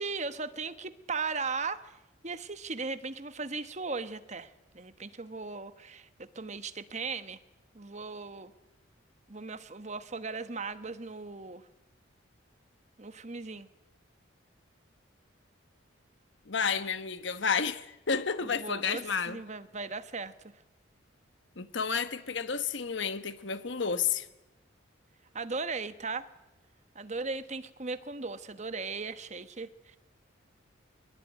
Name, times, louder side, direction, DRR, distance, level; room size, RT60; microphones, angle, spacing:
voice 1, 0.0-2.0 2.2-7.4 7.7-8.5 9.3-11.7 13.0-13.7 18.4-20.3 25.3-26.3 26.9-30.0, right 4 dB, 35° right, 1.2 m, -37 dB
voice 2, 16.5-19.4 21.6-24.3, left 6 dB, 65° left, 1.2 m, -31 dB
23.5 x 22.0 x 9.2 m
head